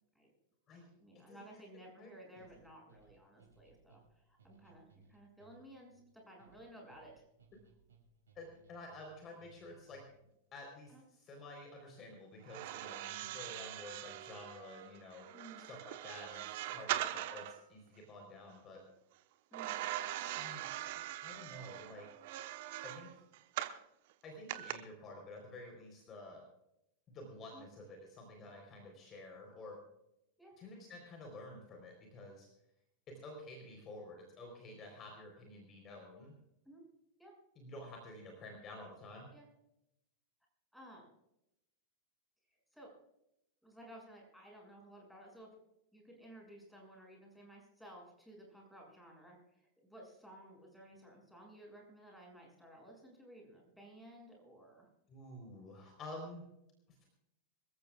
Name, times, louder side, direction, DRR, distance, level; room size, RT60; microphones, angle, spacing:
voice 1, 1.0-7.2 10.9-11.0 15.3-15.6 19.5-19.8 27.5-27.7 30.4-30.6 36.6-36.8 37.2-37.3 39.3-39.5 40.7-41.1 42.5-42.9 43.6-45.6 45.9-54.9, right 1 dB, ahead, -2 dB, 6.7 m, -56 dB
sound 1, 2.4-10.3, right 5 dB, 65° right, 6.0 m, -66 dB
voice 2, 8.4-10.0 10.5-10.9 11.3-15.2 15.7-18.8 20.3-20.7 21.2-22.1 22.8-23.1 24.2-26.4 27.1-29.8 30.6-32.5 33.2-36.3 37.6-39.3 55.1-56.4, left 2 dB, 30° left, 2 dB, 3.9 m, -50 dB
sound 2, 12.4-17.6 19.5-23.8 24.5-24.7, right 14 dB, 50° right, 1.1 m, -42 dB
26.5 x 15.0 x 2.4 m, 0.84 s
figure-of-eight pair, 90°, 0 cm